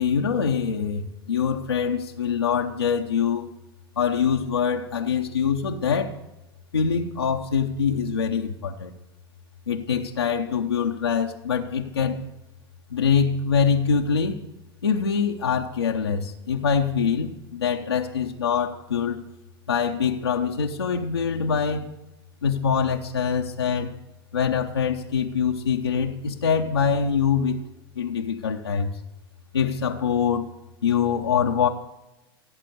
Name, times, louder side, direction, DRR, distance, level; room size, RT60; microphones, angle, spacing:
voice 1, 0.0-3.5 4.0-6.2 6.7-8.9 9.7-12.2 12.9-14.4 14.8-19.2 19.7-21.9 22.4-23.9 24.3-27.6 28.0-29.0 29.5-30.5 30.8-31.7, left 6 dB, 90° left, 1 dB, 0.8 m, -24 dB
16.5 x 7.5 x 6.8 m, 0.99 s
hypercardioid pair, 85°, 13 cm